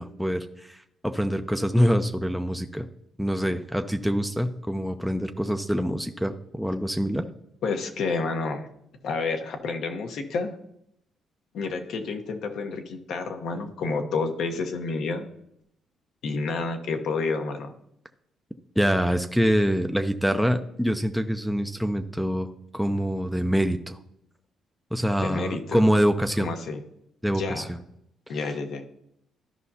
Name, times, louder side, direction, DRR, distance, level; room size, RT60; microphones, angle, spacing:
voice 1, 0.0-2.9 3.2-7.2 18.8-24.0 24.9-26.5 27.2-27.8, equal, ahead, 6 dB, 0.5 m, -25 dB
voice 2, 7.6-8.7 9.0-10.6 11.5-15.3 16.2-17.7 25.2-25.9 26.4-26.8 27.3-27.7 28.3-28.9, left 4 dB, 75° left, 5 dB, 1.1 m, -29 dB
13.0 x 5.4 x 2.8 m, 0.76 s
cardioid pair, 90°, 0 cm